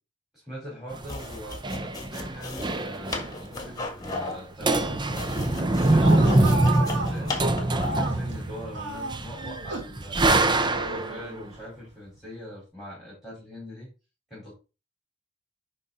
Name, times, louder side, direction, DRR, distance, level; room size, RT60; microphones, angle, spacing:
voice 1, 0.3-7.4 7.8-10.3 10.8-13.9 14.3-14.5, equal, ahead, -6 dB, 4.5 m, -42 dB
sound 1, 0.9-3.4 3.7-3.8 4.0-4.3 4.6-11.2, right 2 dB, 25° right, 0.7 m, -24 dB
sound 2, 1.0-8.1, left 3 dB, 20° left, 1.7 m, -36 dB
sound 3, 6.0-8.4 8.7-10.0 10.6-11.6, right 3 dB, 70° right, 1.9 m, -34 dB
11.0 x 3.8 x 4.2 m, 0.30 s
head